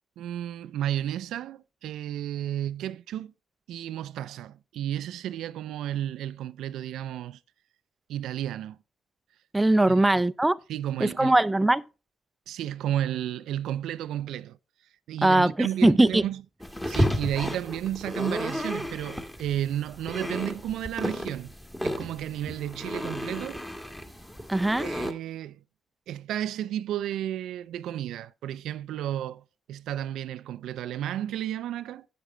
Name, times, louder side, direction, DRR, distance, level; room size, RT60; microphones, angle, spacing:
voice 1, 0.2-3.3 3.7-7.4 8.1-8.8 9.9-10.2 10.7-11.4 12.5-14.6 15.1-16.4 16.8-21.5 21.8-23.6 24.8-25.6 26.1-32.1, right 11 dB, 80° right, 0.4 m, -32 dB
voice 2, 9.5-10.6 11.0-11.8 15.2-16.2 24.5-24.9, right 2 dB, 10° right, 0.4 m, -21 dB
sound 1, 16.6-25.1, equal, 10° left, 1.5 m, -32 dB
10.0 x 7.7 x 3.2 m
cardioid pair, 90°, 0 cm